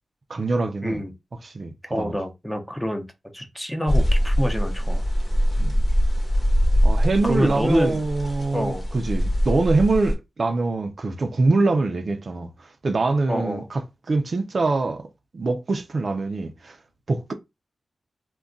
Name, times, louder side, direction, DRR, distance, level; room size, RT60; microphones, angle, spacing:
voice 1, 0.3-1.0 1.4-2.1 5.6-5.8 6.8-15.1 15.3-16.8 17.1-17.3, right 3 dB, 50° right, 0.5 m, -24 dB
voice 2, 0.8-1.1 1.9-3.1 3.3-5.0 7.2-8.0 8.5-8.9 13.3-13.7, equal, 5° left, 0.7 m, -26 dB
sound 1, 3.9-10.1, equal, 40° left, 0.9 m, -22 dB
2.3 x 2.2 x 3.7 m
wide cardioid pair, 90°, 0 cm